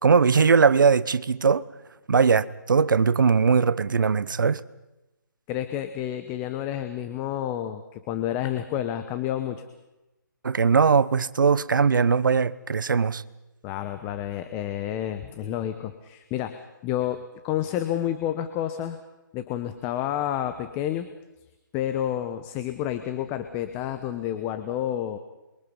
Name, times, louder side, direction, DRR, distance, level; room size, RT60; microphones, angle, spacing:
voice 1, 0.0-1.6 2.1-4.6 10.4-13.2, right 5 dB, 70° right, 1.0 m, -20 dB
voice 2, 5.5-9.6 13.6-19.0 19.3-21.1 21.7-25.2, left 11 dB, 20° left, 1.0 m, -30 dB
28.0 x 22.5 x 5.5 m
figure-of-eight pair, 150°, 11 cm